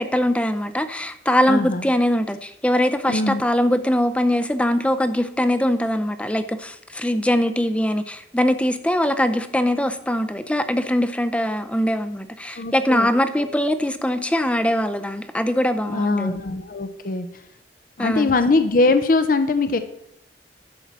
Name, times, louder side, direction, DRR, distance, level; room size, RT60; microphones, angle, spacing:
voice 1, 0.0-16.4 18.0-18.3, equal, 5° left, 10 dB, 0.5 m, -22 dB
voice 2, 1.5-1.9 3.1-3.4 12.6-13.1 13.4-13.5 15.9-17.3 18.0-19.8, left 3 dB, 50° left, 10 dB, 0.6 m, -21 dB
11.5 x 7.4 x 4.1 m, 0.78 s
head